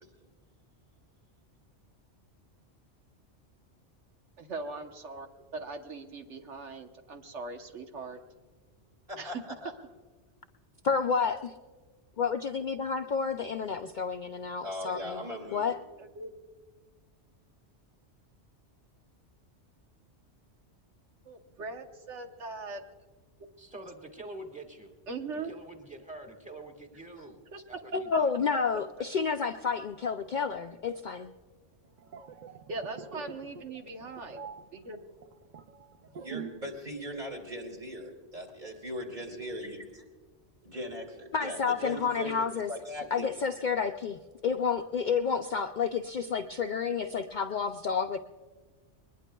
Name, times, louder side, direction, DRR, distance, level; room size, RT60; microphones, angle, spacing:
voice 1, 4.4-8.2 9.2-9.4 16.0-16.3 21.2-22.8 25.1-25.5 27.5-27.6 28.1-28.2 32.7-34.4 34.7-35.0, right 3 dB, 80° right, 5 dB, 1.4 m, -40 dB
voice 2, 9.1-9.7 14.6-15.6 36.1-40.0 40.6-43.3, equal, 40° right, 1 dB, 2.5 m, -39 dB
voice 3, 10.8-11.5 12.2-15.2 15.5-15.8 28.1-31.3 41.3-42.7 43.1-48.2, left 6 dB, 55° left, 6 dB, 0.5 m, -30 dB
voice 4, 23.6-24.9 25.3-27.4 27.7-28.5, right 2 dB, 5° right, 2 dB, 1.4 m, -46 dB
sound 1, 31.9-36.8 37.0-37.3, right 6 dB, 55° right, 0.5 m, -45 dB
22.0 x 20.5 x 2.3 m, 1.4 s
omnidirectional pair, 1.2 m